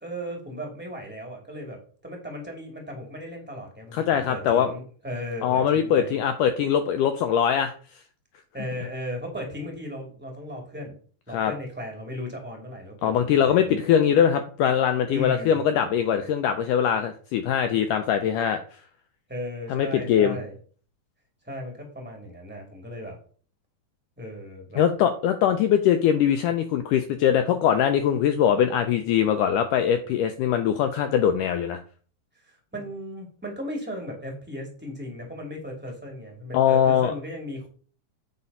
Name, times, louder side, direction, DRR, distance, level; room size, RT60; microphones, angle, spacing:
voice 1, 0.0-6.2 8.5-10.9 11.3-13.9 15.1-15.6 19.3-20.5 21.4-23.2 24.2-24.8 32.4-37.7, equal, 5° right, 1 dB, 1.5 m, -36 dB
voice 2, 3.9-4.7 5.4-7.7 11.3-11.5 13.0-18.6 19.7-20.4 24.8-31.8 36.5-37.1, left 9 dB, 90° left, 8 dB, 1.8 m, -22 dB
8.4 x 4.9 x 5.4 m, 0.43 s
omnidirectional pair, 4.4 m